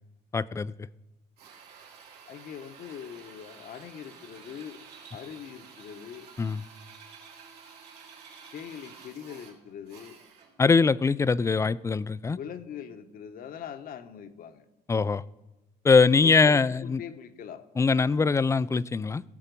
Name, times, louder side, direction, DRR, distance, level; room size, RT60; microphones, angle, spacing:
voice 1, 0.3-0.7 6.4-6.6 10.6-12.4 14.9-15.2 15.8-17.0 17.8-19.2, left 4 dB, 15° left, 0.4 m, -22 dB
Drill, 1.4-10.6, right 6 dB, 70° right, 3.8 m, -50 dB
voice 2, 2.3-4.8 5.1-6.3 8.5-10.2 12.3-14.6 16.1-17.7, left 8 dB, 60° left, 1.1 m, -42 dB
17.0 x 7.2 x 5.3 m
cardioid pair, 110°, 17 cm